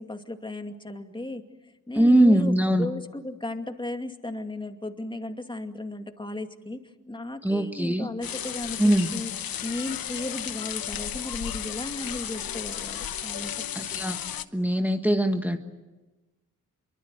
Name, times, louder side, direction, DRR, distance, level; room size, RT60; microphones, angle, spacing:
voice 1, 0.0-1.4 1.9-2.5 2.8-9.3 9.6-13.9, left 2 dB, 15° left, 6 dB, 2.4 m, -35 dB
voice 2, 2.0-2.9 7.4-8.1 8.8-9.1 13.7-14.2 14.5-15.6, right 1 dB, 5° right, 5 dB, 1.6 m, -21 dB
sound 1, 8.2-14.5, left 10 dB, 80° left, 1.0 m, -34 dB
26.5 x 24.0 x 7.8 m, 1.1 s
cardioid pair, 75°, 35 cm